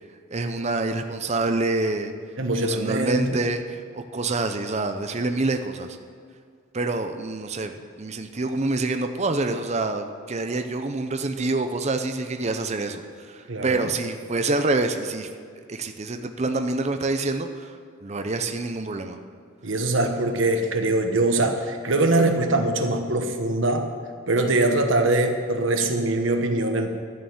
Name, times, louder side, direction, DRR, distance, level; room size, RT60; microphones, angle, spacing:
voice 1, 0.3-2.1 2.5-6.0 6.7-15.3 15.7-17.8 18.0-19.2, right 2 dB, 35° right, 7 dB, 0.6 m, -27 dB
voice 2, 2.4-3.4 13.5-13.9 19.6-23.9 24.3-27.0, right 2 dB, 65° right, 5 dB, 1.3 m, -23 dB
12.5 x 6.7 x 9.2 m, 2.1 s
head